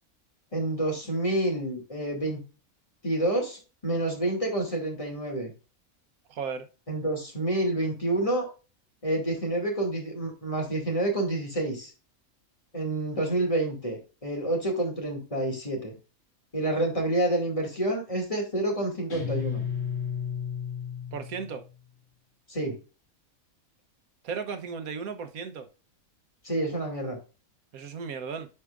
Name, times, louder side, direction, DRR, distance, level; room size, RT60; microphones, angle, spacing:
voice 1, 0.5-2.4 3.0-5.5 6.9-8.5 9.0-11.9 12.7-16.0 16.5-19.6 22.5-22.8 26.4-27.2, right 1 dB, 25° left, 2.3 m, -28 dB
voice 2, 6.3-6.7 21.1-21.6 24.2-25.7 27.7-28.5, right 6 dB, 80° right, 1.3 m, -35 dB
Guitar, 19.1-21.7, left 8 dB, 60° left, 2.3 m, -33 dB
10.0 x 4.7 x 2.4 m
omnidirectional pair, 1.5 m